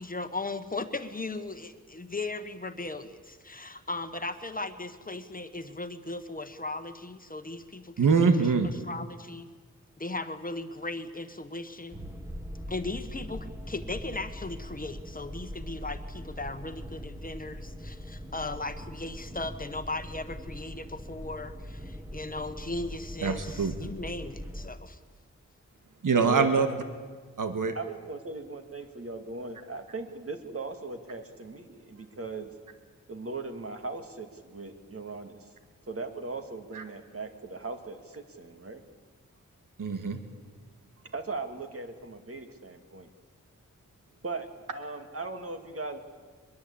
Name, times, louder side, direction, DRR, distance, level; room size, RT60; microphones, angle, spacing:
voice 1, 0.0-8.3 8.6-9.5 10.0-12.0 12.7-25.0, left 2 dB, 25° left, 9 dB, 1.3 m, -37 dB
voice 2, 8.0-8.7 23.2-23.7 26.0-26.7 27.4-27.7 36.7-36.8 39.8-40.2, right 5 dB, 85° right, 7 dB, 1.9 m, -24 dB
sound 1, 11.9-24.7, equal, 10° right, 1.7 m, -41 dB
voice 3, 26.1-26.7 27.7-32.5 33.1-35.5 35.9-38.8 41.1-43.1 44.2-46.0, right 3 dB, 45° right, 6 dB, 2.4 m, -38 dB
23.5 x 21.5 x 8.7 m, 1.5 s
wide cardioid pair, 115°, 31 cm